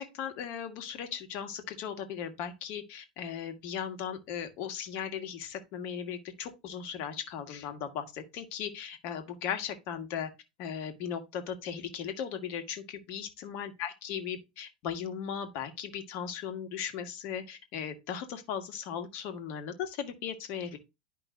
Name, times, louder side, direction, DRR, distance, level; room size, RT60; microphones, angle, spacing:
voice 1, 0.0-10.3 10.6-20.8, left 8 dB, 50° left, 1.5 m, -37 dB
11.0 x 5.3 x 2.5 m
figure-of-eight pair, 90°, 5 cm